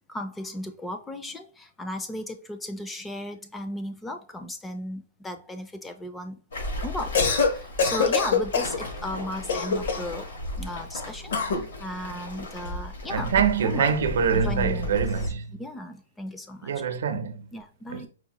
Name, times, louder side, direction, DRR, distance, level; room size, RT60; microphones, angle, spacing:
voice 1, 0.1-6.4 6.8-10.3 10.5-13.9 14.3-16.7 17.5-18.1, left 1 dB, 10° left, 0.4 m, -36 dB
Waves surf, 6.5-15.3, left 1 dB, 85° left, 1.9 m, -36 dB
Cough, 7.0-7.5 7.8-8.8 9.5-10.1 11.3-11.7, left 5 dB, 70° left, 0.9 m, -23 dB
voice 2, 13.1-15.4 16.6-17.5 17.9-18.0, right 6 dB, 70° right, 0.6 m, -24 dB
4.7 x 2.1 x 3.0 m
hypercardioid pair, 160°, 0 cm